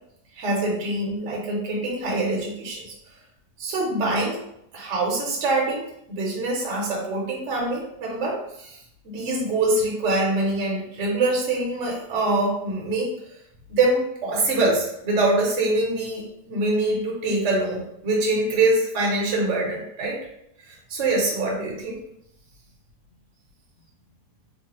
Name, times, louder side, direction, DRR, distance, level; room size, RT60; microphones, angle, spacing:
voice 1, 0.3-2.9 3.6-4.4 4.7-5.8 6.1-8.8 9.0-13.1 13.7-20.2 20.6-22.0, right 2 dB, 55° right, -3 dB, 1.0 m, -24 dB
3.3 x 2.1 x 2.9 m, 0.77 s
omnidirectional pair, 1.8 m